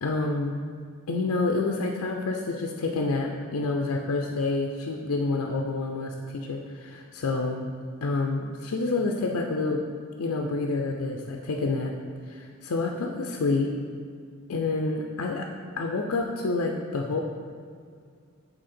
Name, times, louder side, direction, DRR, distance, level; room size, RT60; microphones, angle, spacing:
voice 1, 0.0-0.6 1.1-7.7 8.0-9.8 10.2-11.9 12.3-13.7 14.5-15.5 15.8-17.2, left 3 dB, 80° left, 2 dB, 0.5 m, -28 dB
6.3 x 4.3 x 4.3 m, 2.2 s
head